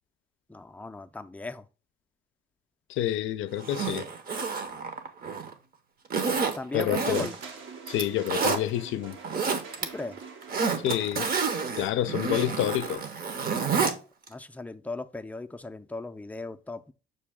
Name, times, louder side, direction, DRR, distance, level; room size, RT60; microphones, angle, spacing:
voice 1, 0.5-1.6 6.6-7.3 9.8-10.2 14.3-16.9, left 2 dB, 5° left, 0.4 m, -37 dB
voice 2, 2.9-4.1 6.7-7.3 7.9-9.2 10.8-11.3 11.8-13.0, left 12 dB, 80° left, 0.4 m, -28 dB
Zipper (clothing), 3.6-5.5 6.1-7.5 7.9-8.6 9.1-9.8 10.2-13.9 14.3-14.4, right 5 dB, 50° right, 0.8 m, -29 dB
sound 1, 7.1-11.4, right 5 dB, 80° right, 1.0 m, -45 dB
6.6 x 2.3 x 3.4 m
cardioid pair, 90°, 20 cm